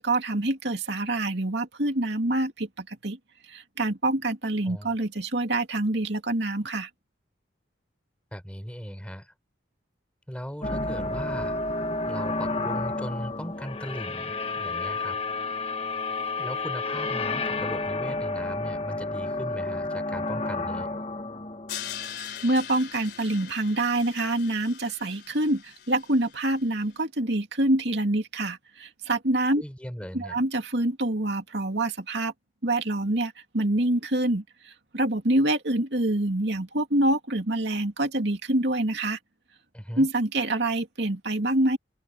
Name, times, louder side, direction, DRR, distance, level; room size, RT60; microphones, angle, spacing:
voice 1, 0.0-3.2 3.4-6.9 22.2-29.6 30.1-32.3 32.6-39.2 40.0-41.8, right 1 dB, 65° right, 2.7 m, -26 dB
voice 2, 4.6-5.0 8.3-9.3 10.3-11.8 12.1-15.2 16.4-20.9 29.6-30.4 39.7-40.1, equal, 5° left, 3.7 m, -38 dB
sound 1, 10.6-22.7, left 2 dB, 30° left, 1.1 m, -31 dB
Crash cymbal, 21.7-26.7, left 10 dB, 55° left, 4.2 m, -41 dB
head